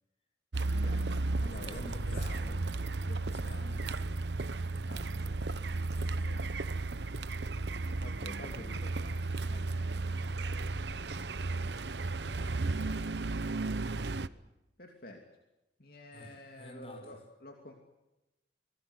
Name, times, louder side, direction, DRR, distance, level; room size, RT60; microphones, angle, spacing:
Car, 0.5-14.3, right 3 dB, 75° right, 1.0 m, -34 dB
voice 1, 0.7-1.8 2.1-2.6 3.1-3.7 4.9-5.4 8.0-10.0 14.8-15.2 15.8-17.7, left 1 dB, 55° left, 3 dB, 3.0 m, -50 dB
voice 2, 1.6-2.7 3.3-4.0 4.8-4.9 5.5-6.6 12.3-12.6 16.1-17.2, left 1 dB, 35° left, 5 dB, 5.9 m, -50 dB
26.0 x 20.0 x 8.1 m, 0.96 s
head